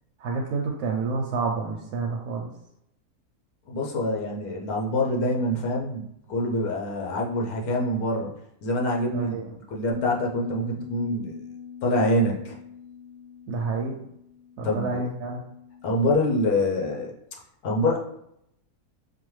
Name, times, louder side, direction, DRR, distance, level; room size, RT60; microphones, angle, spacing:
voice 1, 0.2-2.5 9.1-9.5 13.5-14.0 14.6-15.4, right 4 dB, 85° right, 0 dB, 1.1 m, -29 dB
voice 2, 3.7-8.3 8.6-11.4 11.8-12.6 14.6-15.1 15.8-17.1 17.6-18.0, left 1 dB, 75° left, -1 dB, 1.2 m, -25 dB
Bass guitar, 9.9-16.2, left 7 dB, 30° left, 0.6 m, -42 dB
5.4 x 2.2 x 3.1 m, 0.79 s
omnidirectional pair, 1.6 m